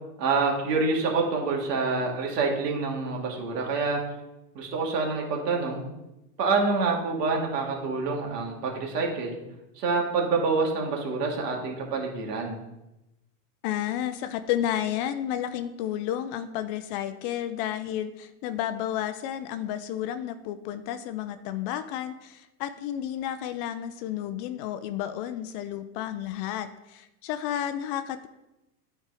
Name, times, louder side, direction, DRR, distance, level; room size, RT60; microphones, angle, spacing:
voice 1, 0.2-4.0 4.5-5.8 6.4-9.4 9.8-12.6, right 4 dB, 85° right, 0 dB, 2.3 m, -27 dB
voice 2, 13.6-28.3, left 11 dB, 40° left, 11 dB, 0.4 m, -31 dB
8.9 x 4.5 x 4.8 m, 0.94 s
supercardioid pair, 130°, 47 cm